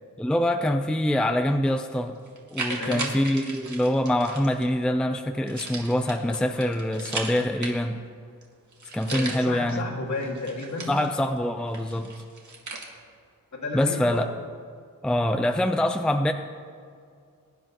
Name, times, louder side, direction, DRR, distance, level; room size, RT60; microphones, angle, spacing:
voice 1, 0.2-2.2 2.5-8.0 8.9-9.9 10.9-12.1 13.7-14.3 15.0-16.3, left 1 dB, 5° left, 6 dB, 0.5 m, -25 dB
sound 1, 1.7-1.8 2.2-4.6 5.5-8.1 8.4-8.5 8.7-9.7 10.2-11.4 11.7-12.9, right 3 dB, 60° right, 2.1 m, -36 dB
voice 2, 2.7-3.1 9.1-10.9 13.5-14.2, left 2 dB, 55° left, -2 dB, 2.3 m, -32 dB
22.0 x 10.5 x 3.0 m, 2.3 s
wide cardioid pair, 105°, 34 cm